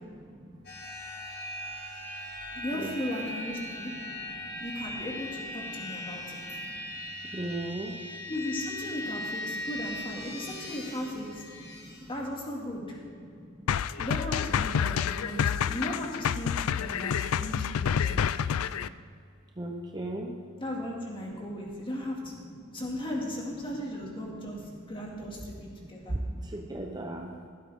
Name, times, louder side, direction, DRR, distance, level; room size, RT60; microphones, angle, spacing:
sound 1, 0.6-12.0, left 1 dB, 50° left, 2.1 m, -39 dB
voice 1, 2.5-3.9 4.6-6.4 8.3-11.5 12.1-13.0 14.0-18.2 20.6-26.1, left 1 dB, 25° left, -1 dB, 2.2 m, -36 dB
voice 2, 7.3-7.9 19.6-20.3 26.5-27.3, right 1 dB, 20° right, 2 dB, 0.7 m, -35 dB
sound 2, 13.7-18.9, left 8 dB, 70° left, 0.3 m, -28 dB
15.5 x 12.5 x 3.6 m, 2.3 s
head